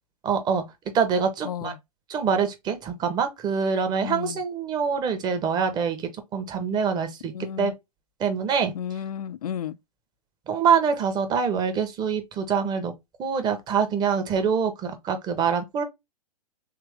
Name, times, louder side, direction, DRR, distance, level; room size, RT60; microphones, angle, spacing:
voice 1, 0.2-0.6 0.9-1.7 2.1-7.3 7.6-7.7 8.2-8.7 10.5-12.9 13.2-15.8, right 6 dB, 20° right, 0.9 m, -25 dB
voice 2, 1.4-1.8 4.0-4.4 7.3-7.7 8.7-9.8, left 9 dB, 80° left, 0.4 m, -33 dB
3.4 x 2.8 x 3.2 m
hypercardioid pair, 125°, 19 cm